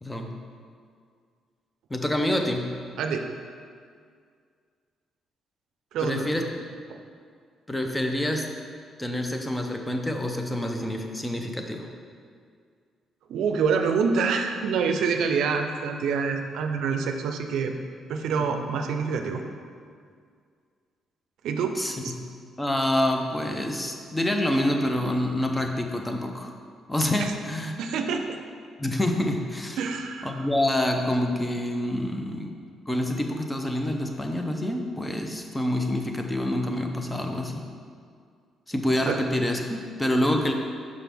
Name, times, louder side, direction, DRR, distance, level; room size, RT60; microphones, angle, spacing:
voice 1, 0.0-0.4 1.9-2.8 6.0-6.5 7.7-8.5 9.0-11.9 18.4-18.5 21.8-22.2 22.6-26.5 26.9-27.7 28.8-29.8 30.2-32.6 32.9-37.6 38.7-40.5, left 1 dB, 10° left, 3 dB, 0.6 m, -27 dB
voice 2, 5.9-6.3 6.9-7.0 13.3-17.7 18.1-19.4 21.4-21.8 22.0-22.1 27.8-28.3 29.8-30.3 39.1-39.2, right 5 dB, 80° right, 5 dB, 0.4 m, -26 dB
5.9 x 4.9 x 3.5 m, 2.1 s
cardioid pair, 90°, 0 cm